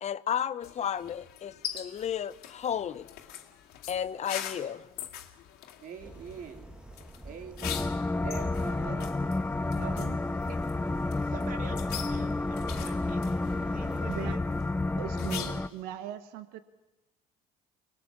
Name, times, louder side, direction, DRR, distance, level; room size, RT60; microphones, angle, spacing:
voice 1, 0.0-3.1 3.9-4.9, left 9 dB, 45° left, 0.8 m, -33 dB
sound 1, 0.6-15.8, left 11 dB, 75° left, 2.3 m, -44 dB
voice 2, 5.8-6.7 7.2-7.9 8.2-9.2 9.8-10.0 10.2-10.6 11.1-13.2 13.7-14.5, right 6 dB, 60° right, 3.0 m, -45 dB
sound 2, 6.0-14.4, right 1 dB, 5° right, 1.3 m, -45 dB
sound 3, 7.6-15.7, left 2 dB, 10° left, 0.8 m, -31 dB
voice 3, 9.7-10.2 14.1-14.3 15.0-16.6, right 12 dB, 80° right, 1.3 m, -40 dB
24.5 x 20.5 x 7.3 m
supercardioid pair, 80°, 16 cm